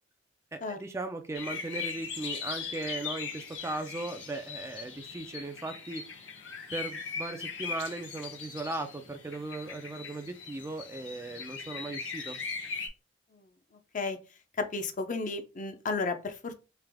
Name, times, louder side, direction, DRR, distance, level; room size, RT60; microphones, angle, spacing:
voice 1, 0.5-6.0 6.7-12.4, right 2 dB, 15° right, 6 dB, 0.4 m, -38 dB
sound 1, 1.3-12.9, left 5 dB, 75° left, 0.9 m, -40 dB
voice 2, 14.6-16.6, left 3 dB, 45° left, 7 dB, 0.6 m, -33 dB
3.3 x 2.9 x 3.5 m, 0.31 s
head